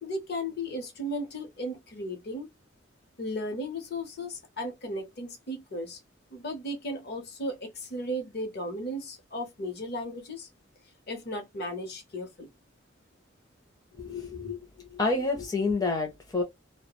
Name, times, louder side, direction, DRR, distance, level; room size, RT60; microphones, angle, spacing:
voice 1, 0.0-2.5 3.2-6.0 6.3-10.5 11.1-12.5, equal, 50° left, 0.7 m, -35 dB
voice 2, 14.0-14.6 14.9-16.4, left 3 dB, 20° left, 0.5 m, -28 dB
2.3 x 2.1 x 2.9 m
head